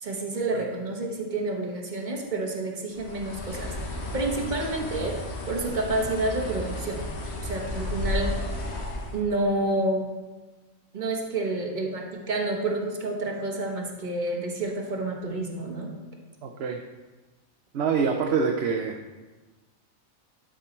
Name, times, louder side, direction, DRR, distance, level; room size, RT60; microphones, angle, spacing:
voice 1, 0.0-5.2 5.5-7.0 7.4-8.4 9.1-10.1 10.9-15.9, right 2 dB, 35° right, 1 dB, 1.3 m, -29 dB
Bird, 3.0-9.2, left 1 dB, 55° left, 1.4 m, -33 dB
voice 2, 16.4-16.8 17.7-19.1, right 5 dB, 60° right, 3 dB, 0.8 m, -26 dB
12.0 x 5.2 x 4.4 m, 1.2 s
omnidirectional pair, 1.4 m